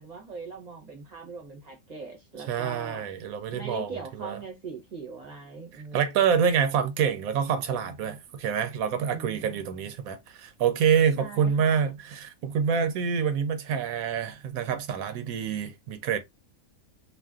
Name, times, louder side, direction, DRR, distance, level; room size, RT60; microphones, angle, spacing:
voice 1, 0.0-3.0 3.5-6.2 9.1-9.6 11.2-12.0, right 4 dB, 35° right, 0.8 m, -41 dB
voice 2, 2.5-4.4 5.7-16.2, right 7 dB, 80° right, 1.0 m, -27 dB
2.5 x 2.4 x 2.3 m
omnidirectional pair, 1.5 m